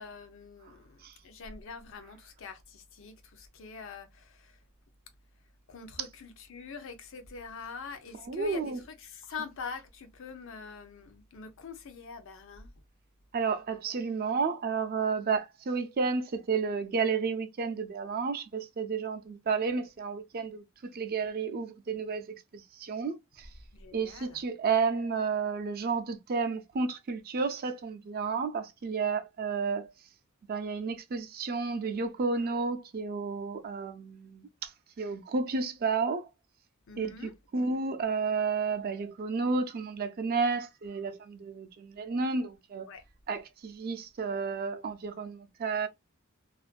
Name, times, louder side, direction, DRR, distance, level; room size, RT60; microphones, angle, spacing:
voice 1, 0.0-4.6 5.7-12.7 23.7-24.4 36.9-37.3 42.9-43.0, left 5 dB, 65° left, 0.6 m, -44 dB
voice 2, 8.3-8.8 13.3-23.5 23.9-29.9 30.5-34.7 35.0-36.3 37.0-42.9 43.3-45.9, right 5 dB, 45° right, 0.4 m, -31 dB
2.4 x 2.2 x 2.4 m
head